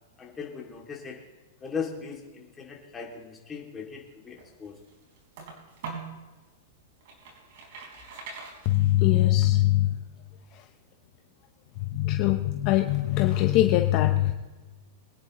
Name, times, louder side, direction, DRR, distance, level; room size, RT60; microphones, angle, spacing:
voice 1, 0.2-1.2 1.6-4.8, left 6 dB, 15° left, -1 dB, 2.6 m, -38 dB
sound 1, 4.1-6.2 6.7-9.2, right 5 dB, 55° right, 5.0 m, -42 dB
voice 2, 8.6-10.0 10.5-10.7 11.8-14.3, left 15 dB, 40° left, 4 dB, 0.9 m, -22 dB
24.0 x 10.0 x 3.1 m, 1.2 s
supercardioid pair, 155°, 0 cm